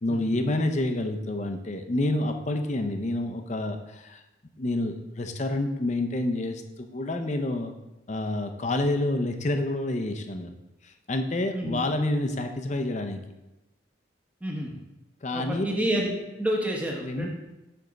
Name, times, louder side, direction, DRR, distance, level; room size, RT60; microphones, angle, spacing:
voice 1, 0.0-4.2 4.6-7.7 8.1-10.5 10.8-13.2 15.2-15.7 17.0-17.3, left 1 dB, 35° left, 6 dB, 0.5 m, -28 dB
voice 2, 14.4-14.7 15.3-16.1 16.4-17.3, right 1 dB, 5° right, -1 dB, 0.9 m, -28 dB
9.9 x 3.5 x 3.9 m, 0.99 s
head